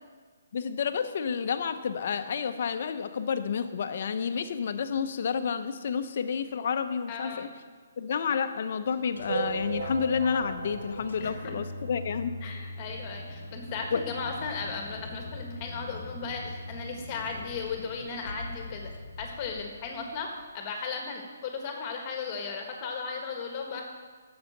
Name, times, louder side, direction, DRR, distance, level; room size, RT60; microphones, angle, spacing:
voice 1, 0.5-7.5 8.0-12.3 13.9-14.0, left 6 dB, 55° left, 10 dB, 0.8 m, -30 dB
voice 2, 7.1-7.5 11.2-11.5 12.4-18.9 19.2-20.3 20.5-23.8, left 5 dB, 30° left, 2 dB, 1.5 m, -36 dB
sound 1, 8.9-20.5, left 2 dB, 85° left, 1.1 m, -42 dB
sound 2, 9.3-12.1 12.6-12.7 12.9-13.0 13.3-13.4 14.3-14.4 14.9-15.0, right 4 dB, 80° right, 1.0 m, -36 dB
9.6 x 7.0 x 6.5 m, 1.5 s
hypercardioid pair, 150°, 0 cm